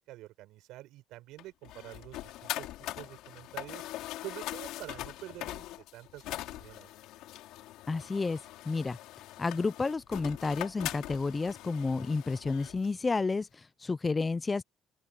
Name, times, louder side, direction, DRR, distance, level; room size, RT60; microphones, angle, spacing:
voice 1, 0.1-3.8 4.2-5.6 5.9-6.9, right 16 dB, 75° right, 7.1 m, -47 dB
sound 1, 1.4-12.9, left 15 dB, 75° left, 3.9 m, -42 dB
voice 2, 7.9-8.4 8.7-9.0 9.4-14.6, left 4 dB, 20° left, 0.4 m, -31 dB
open air
cardioid pair, 130°, 0 cm